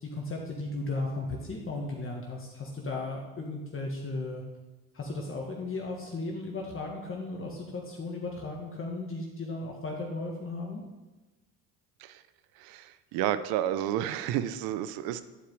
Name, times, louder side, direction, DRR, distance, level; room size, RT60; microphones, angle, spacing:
voice 1, 0.0-4.4 4.9-10.8, left 2 dB, 35° left, -1 dB, 1.6 m, -35 dB
voice 2, 12.6-15.2, right 11 dB, 70° right, 13 dB, 0.7 m, -31 dB
10.0 x 4.8 x 4.8 m, 1.1 s
supercardioid pair, 75°, 38 cm